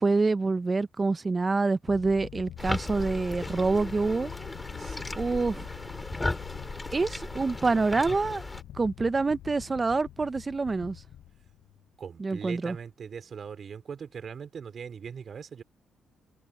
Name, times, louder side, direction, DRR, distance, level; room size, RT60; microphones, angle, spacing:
voice 1, 0.0-4.3 5.2-5.7 6.9-8.4 8.8-11.0 12.2-12.8, right 3 dB, 25° right, 0.7 m, -26 dB
sound 1, 1.9-12.0, left 12 dB, 75° left, 0.6 m, -45 dB
sound 2, 2.6-8.6, left 2 dB, 15° left, 2.6 m, -36 dB
voice 2, 4.8-5.3 12.0-15.6, right 6 dB, 50° right, 3.2 m, -41 dB
cardioid pair, 90°, 0 cm